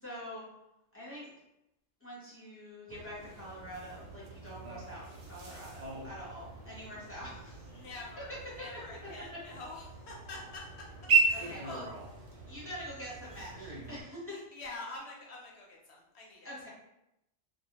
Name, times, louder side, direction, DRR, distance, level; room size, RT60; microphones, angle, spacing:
voice 1, 0.0-0.5 0.9-1.3 2.0-7.8 8.3-8.4 11.3-11.8 12.5-14.4 16.4-16.7, equal, 15° left, -8 dB, 0.7 m, -45 dB
sound 1, 2.9-14.0, right 4 dB, 80° right, 0.3 m, -36 dB
voice 2, 7.7-10.6 11.2-11.8 14.3-16.7, left 2 dB, 70° left, -2 dB, 0.8 m, -46 dB
2.2 x 2.1 x 2.8 m, 0.85 s
omnidirectional pair, 1.3 m